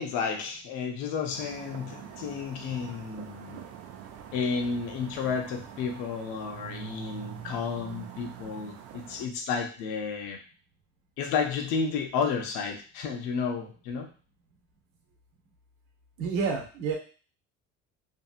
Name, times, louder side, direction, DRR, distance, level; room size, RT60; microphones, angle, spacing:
voice 1, 0.0-3.6 4.3-10.4 11.2-14.1, left 5 dB, 80° left, 4 dB, 0.7 m, -32 dB
sound 1, 1.3-9.3, right 9 dB, 55° right, 0.5 m, -44 dB
voice 2, 16.2-16.9, right 5 dB, 80° right, 1 dB, 0.9 m, -29 dB
2.8 x 2.6 x 2.4 m, 0.39 s
cardioid pair, 135°, 30 cm